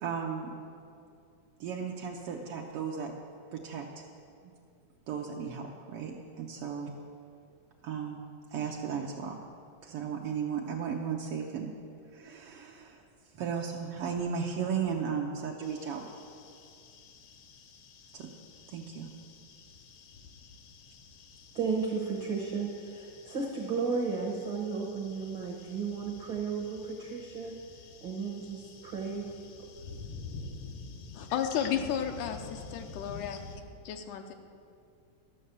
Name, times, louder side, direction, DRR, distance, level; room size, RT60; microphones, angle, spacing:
voice 1, 0.0-0.5 1.6-3.1 3.5-4.0 4.4-4.5 5.1-6.9 7.8-9.4 9.8-11.7 12.1-13.0 13.3-16.1 18.1-18.3 18.7-19.1, right 6 dB, 85° right, 0 dB, 1.3 m, -35 dB
sound 1, 15.6-33.6, left 4 dB, 70° left, 1.5 m, -49 dB
voice 2, 21.5-27.5 28.0-29.3, right 5 dB, 70° right, -1 dB, 1.1 m, -34 dB
voice 3, 31.1-32.4 32.7-33.4 33.9-34.3, left 8 dB, 85° left, 5 dB, 2.1 m, -32 dB
12.5 x 6.6 x 6.8 m, 2.4 s
omnidirectional pair, 3.5 m